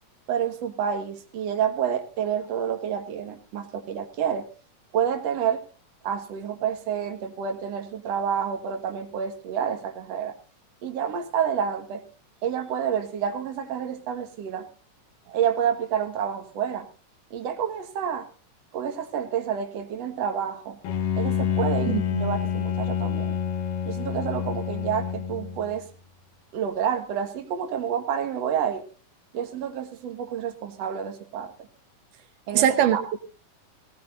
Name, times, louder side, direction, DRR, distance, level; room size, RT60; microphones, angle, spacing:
voice 1, 0.3-4.5 4.9-5.6 6.0-10.3 10.8-12.0 12.4-14.7 15.3-16.9 17.3-18.3 18.7-20.8 21.2-23.4 23.9-25.9 26.5-28.8 29.3-31.5 32.5-32.7 32.9-33.0, right 8 dB, 55° right, 4 dB, 2.5 m, -29 dB
Bowed string instrument, 20.8-25.8, left 8 dB, 85° left, 2.9 m, -28 dB
voice 2, 21.9-22.4 32.5-33.2, right 10 dB, 85° right, 8 dB, 2.7 m, -23 dB
23.5 x 18.5 x 2.6 m, 0.36 s
omnidirectional pair, 3.7 m